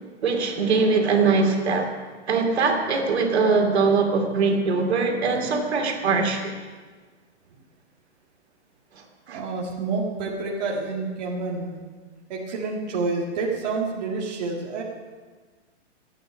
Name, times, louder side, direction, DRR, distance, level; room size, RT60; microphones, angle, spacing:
voice 1, 0.2-1.9 2.3-6.5 9.3-9.4, right 4 dB, 65° right, 3 dB, 2.8 m, -22 dB
voice 2, 9.3-11.8 12.3-14.8, right 3 dB, 35° right, -4 dB, 1.9 m, -28 dB
25.5 x 9.5 x 5.3 m, 1.4 s
hypercardioid pair, 180°, 35 cm